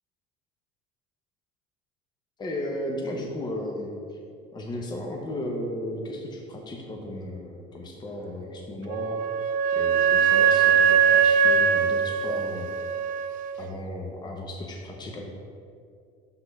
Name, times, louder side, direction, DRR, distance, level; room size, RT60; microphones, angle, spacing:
voice 1, 2.4-4.2 4.5-9.2 9.7-12.8 13.6-15.3, left 1 dB, 20° left, 0 dB, 0.9 m, -35 dB
Wind instrument woodwind instrument, 8.9-13.5, right 7 dB, 45° right, 0.4 m, -21 dB
6.1 x 3.8 x 5.6 m, 2.3 s
supercardioid pair, 100°, 20 cm